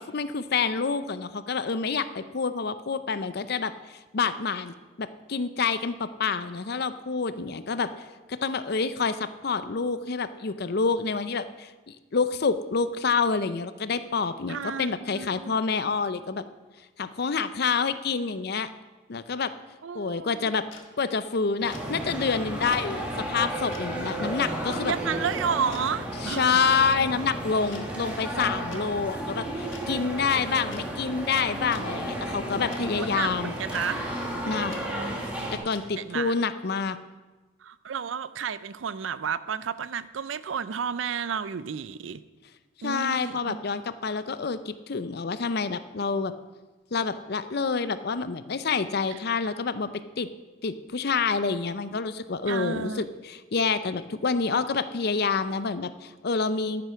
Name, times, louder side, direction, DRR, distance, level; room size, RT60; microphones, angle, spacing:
voice 1, 0.0-7.9 8.3-16.4 17.0-18.7 19.1-19.5 19.9-20.6 21.0-24.9 26.2-33.5 34.5-34.7 35.5-37.0 42.8-46.3 46.9-49.9 50.2-50.3 50.6-56.8, left 5 dB, 55° left, 13 dB, 0.6 m, -28 dB
voice 2, 14.5-15.6 19.8-20.6 24.9-26.6 33.0-34.0 34.6-35.3 35.9-36.3 37.6-42.2 42.8-43.6 49.1-49.2 52.5-53.1, right 7 dB, 70° right, 16 dB, 0.5 m, -32 dB
sound 1, 20.7-20.8 21.7-21.9 22.7-22.8 23.7-23.8 24.7-24.9 25.6-25.8 26.7-26.8 27.7-27.8 28.7-28.8 29.7-29.8 30.7-30.8 31.7-31.8 32.7-32.8 33.7-33.8 34.7-34.8 35.7-35.8, left 6 dB, 75° left, 1.5 m, -45 dB
sound 2, 21.6-35.6, right 1 dB, 5° right, 2.0 m, -33 dB
11.5 x 9.3 x 5.7 m, 1.2 s
head